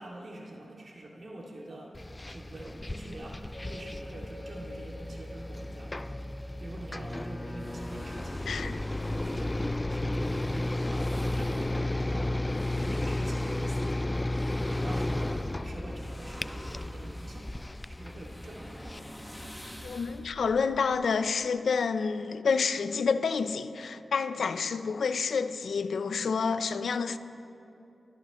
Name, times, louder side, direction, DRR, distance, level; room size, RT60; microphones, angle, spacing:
voice 1, 0.0-6.0 6.5-14.3 14.6-17.5 17.9-19.1 24.4-24.6, right 1 dB, 65° right, 2.4 m, -45 dB
sound 1, 1.9-19.0, left 1 dB, 25° left, 0.4 m, -33 dB
sound 2, 3.5-10.0, left 1 dB, 45° left, 3.7 m, -50 dB
sound 3, 7.6-21.5, equal, 10° left, 1.5 m, -47 dB
voice 2, 8.5-8.8 19.8-27.2, left 5 dB, 85° left, 0.6 m, -29 dB
28.5 x 13.0 x 3.1 m
cardioid pair, 40°, 0 cm